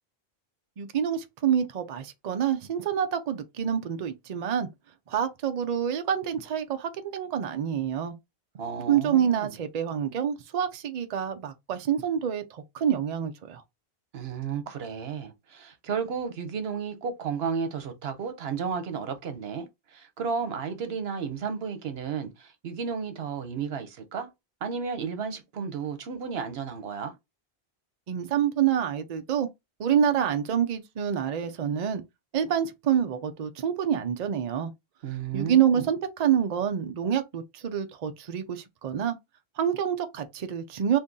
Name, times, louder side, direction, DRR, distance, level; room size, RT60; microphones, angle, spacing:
voice 1, 0.8-4.7 5.1-8.2 8.9-13.6 28.1-29.5 29.8-32.0 32.3-34.7 35.3-39.2 39.6-41.0, right 9 dB, 50° right, 0.5 m, -27 dB
voice 2, 8.6-9.5 14.1-24.3 24.6-27.1 35.0-35.8, right 6 dB, 80° right, 1.0 m, -33 dB
2.7 x 2.6 x 3.7 m
omnidirectional pair, 1.0 m